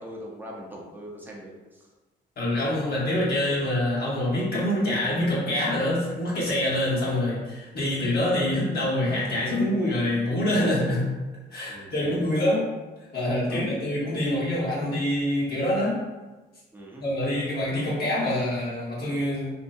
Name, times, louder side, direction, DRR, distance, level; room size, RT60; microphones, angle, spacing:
voice 1, 0.0-1.9 11.7-12.2 13.5-13.6 16.7-17.0, equal, 10° right, -3 dB, 0.6 m, -41 dB
voice 2, 2.4-11.1 11.5-12.6 13.1-16.0 17.0-19.5, left 1 dB, 50° left, -6 dB, 0.9 m, -25 dB
2.6 x 2.4 x 2.2 m, 1.2 s
cardioid pair, 90°, 20 cm